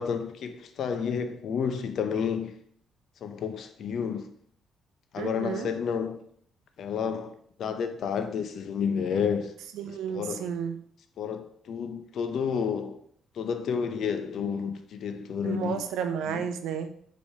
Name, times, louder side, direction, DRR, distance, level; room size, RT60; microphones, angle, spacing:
voice 1, 0.0-2.5 3.2-4.3 5.1-6.2 6.8-7.3 7.6-9.5 10.1-10.4 11.2-13.0 13.4-15.8 16.3-16.4, left 6 dB, 70° left, 0.4 m, -30 dB
voice 2, 5.2-5.7 9.7-10.8 15.4-16.9, right 7 dB, 85° right, 0.4 m, -32 dB
4.4 x 3.1 x 2.7 m
cardioid pair, 90°, 0 cm